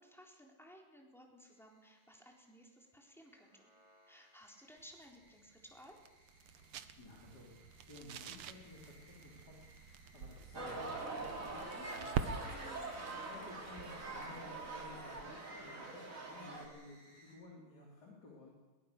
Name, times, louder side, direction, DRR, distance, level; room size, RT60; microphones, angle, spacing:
voice 1, 0.0-3.6 4.1-6.0, equal, ahead, 0 dB, 3.8 m, -58 dB
sound 1, 1.4-17.4, equal, 20° left, 7.5 m, -67 dB
sound 2, 4.8-15.4, right 7 dB, 90° right, 2.0 m, -47 dB
voice 2, 7.0-7.5 7.8-12.4 12.9-18.5, left 2 dB, 45° left, -2 dB, 4.1 m, -55 dB
sound 3, 10.5-16.7, right 2 dB, 40° right, 3.1 m, -44 dB
21.5 x 20.0 x 6.7 m, 1.2 s
omnidirectional pair, 2.4 m